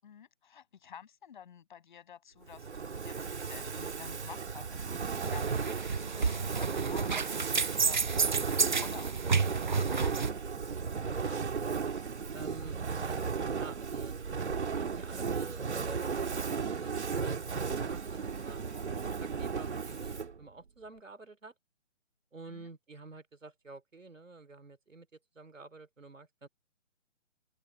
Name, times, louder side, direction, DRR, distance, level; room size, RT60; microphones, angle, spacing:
voice 1, 0.0-10.3 22.5-22.7, left 8 dB, 40° left, 7.5 m, -51 dB
Fire, 2.5-20.4, right 5 dB, 60° right, 2.3 m, -35 dB
sound 1, 5.2-10.3, right 5 dB, 40° right, 0.5 m, -31 dB
voice 2, 11.1-11.8 12.3-14.2 15.0-21.5 22.3-25.1 25.3-26.5, right 3 dB, 85° right, 3.3 m, -49 dB
open air
figure-of-eight pair, 155°, 38 cm